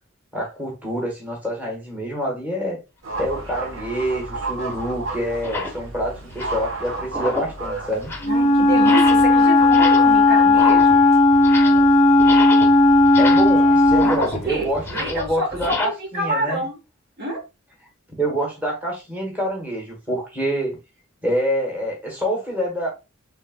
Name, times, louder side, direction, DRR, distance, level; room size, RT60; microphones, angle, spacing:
voice 1, 0.3-2.8 3.2-8.1 13.1-16.6 18.2-20.8 21.2-22.9, equal, 10° right, 1.3 m, -26 dB
sound 1, 3.0-15.0, right 3 dB, 70° right, 1.0 m, -33 dB
sound 2, 3.8-4.0 4.7-4.8 5.3-5.8 6.2-6.7 7.1-7.6 7.9-8.4 8.8-9.3 9.6-10.2 10.5-11.9 12.2-15.9, left 3 dB, 10° left, 0.7 m, -29 dB
Wind instrument woodwind instrument, 8.2-14.3, left 2 dB, 35° left, 0.3 m, -15 dB
voice 2, 8.3-11.0 14.0-15.8 16.1-16.8 17.2-17.4, right 1 dB, 50° right, 1.2 m, -27 dB
4.4 x 3.4 x 2.2 m
head